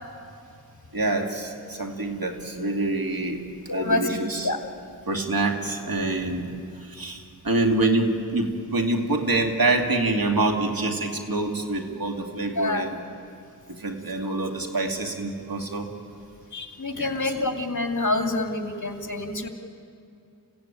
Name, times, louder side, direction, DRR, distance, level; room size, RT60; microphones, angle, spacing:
voice 1, 0.9-3.4 3.7-4.5 5.1-6.4 6.9-7.2 7.4-13.0 13.8-15.9 17.0-17.1, right 2 dB, 75° right, 2 dB, 2.5 m, -26 dB
voice 2, 3.7-4.6 12.5-12.9 16.5-19.5, left 2 dB, 55° left, 3 dB, 2.4 m, -27 dB
27.5 x 16.5 x 9.1 m, 2.5 s
wide cardioid pair, 45°, 36 cm